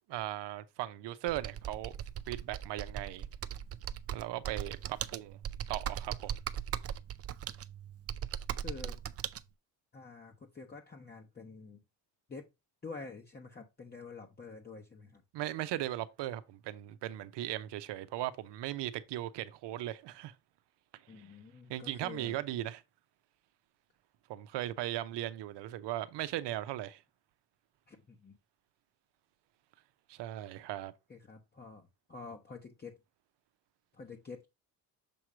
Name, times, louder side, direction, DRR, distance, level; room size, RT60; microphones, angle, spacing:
voice 1, 0.1-1.9 2.3-3.2 4.1-5.4 5.7-6.3 15.3-20.3 21.1-21.3 21.7-22.8 24.3-27.0 30.1-30.9, right 14 dB, 75° right, 0.8 m, -38 dB
Computer keyboard, 1.3-9.4, right 10 dB, 35° right, 0.4 m, -39 dB
voice 2, 8.6-9.0 9.9-11.8 12.3-12.5 12.8-15.2 21.1-22.4 27.9-28.4 31.1-33.0 33.9-34.5, left 4 dB, 25° left, 1.0 m, -48 dB
7.0 x 3.1 x 4.9 m
cardioid pair, 100°, 42 cm